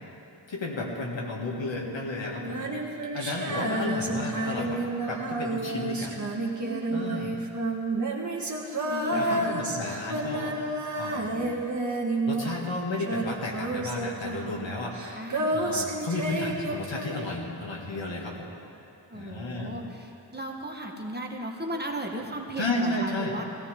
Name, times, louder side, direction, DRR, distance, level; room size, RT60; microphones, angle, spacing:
voice 1, 0.5-2.7 3.1-6.1 6.9-7.3 9.1-10.6 11.0-11.5 12.3-18.5 19.1-19.8 22.6-23.3, left 2 dB, 70° left, -1 dB, 2.3 m, -33 dB
Female singing, 2.4-12.7 13.0-17.4, right 2 dB, 40° right, 1.7 m, -30 dB
voice 2, 6.6-7.2 8.9-9.5 15.1-15.6 19.1-23.4, right 1 dB, 20° right, 1 dB, 1.4 m, -36 dB
20.0 x 15.5 x 3.7 m, 2.8 s
wide cardioid pair, 95°, 46 cm